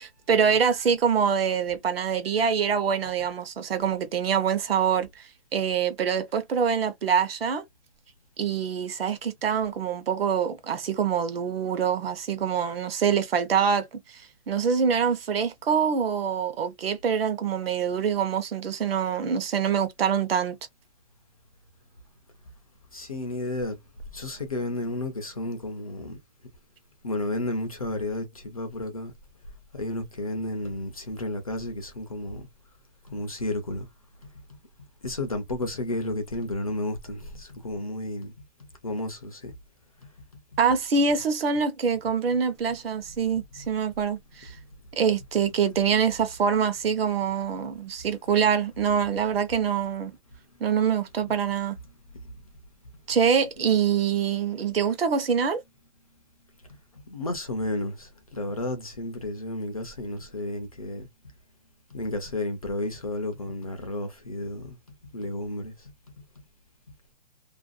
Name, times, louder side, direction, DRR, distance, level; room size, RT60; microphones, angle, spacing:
voice 1, 0.0-7.6 8.4-13.9 14.1-20.6 40.6-44.6 44.9-50.1 50.6-51.8 53.1-55.6, right 7 dB, 65° right, 0.7 m, -25 dB
voice 2, 22.9-23.8 24.1-26.2 27.0-29.1 29.7-32.5 33.1-33.9 35.0-38.3 38.8-39.5 43.3-43.4 57.1-61.1 61.9-64.8 65.1-65.7, left 1 dB, 35° left, 0.4 m, -32 dB
2.5 x 2.1 x 2.3 m
hypercardioid pair, 175°, 33 cm